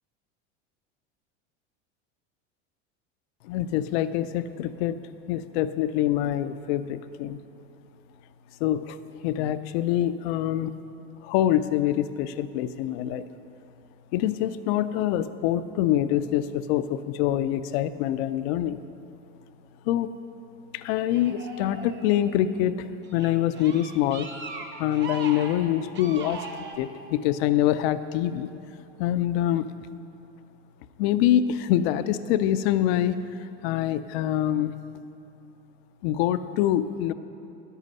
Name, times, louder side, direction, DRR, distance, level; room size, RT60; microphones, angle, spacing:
voice 1, 3.4-5.0 5.3-7.4 8.6-9.0 9.2-10.7 11.2-13.2 14.1-18.8 19.9-20.1 20.7-24.3 24.8-26.5 26.8-28.5 29.0-29.7 31.0-34.7 36.0-37.1, left 12 dB, 70° left, 13 dB, 0.6 m, -25 dB
sound 1, 21.1-22.5 23.0-26.8, right 4 dB, 35° right, 1.1 m, -39 dB
10.5 x 8.3 x 5.5 m, 2.8 s
supercardioid pair, 100°, 32 cm